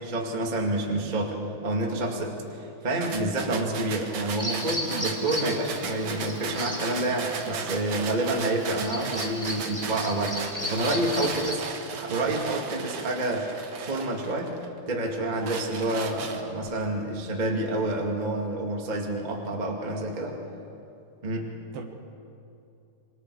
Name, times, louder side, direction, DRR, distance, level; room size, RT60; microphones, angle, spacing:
voice 1, 0.0-10.3 10.7-11.6 11.9-13.5 13.8-14.5 14.9-20.4 21.2-21.5, right 2 dB, 20° right, -1 dB, 1.0 m, -28 dB
sound 1, 3.0-14.7 15.1-16.7, right 5 dB, 85° right, 1.2 m, -36 dB
Bird vocalization bird call bird song, 4.4-11.6, left 1 dB, 15° left, 0.7 m, -36 dB
voice 2, 7.5-7.9 10.6-10.8 21.7-21.8, right 7 dB, 65° right, 3 dB, 3.2 m, -38 dB
27.5 x 24.0 x 4.9 m, 2.7 s
omnidirectional pair, 4.9 m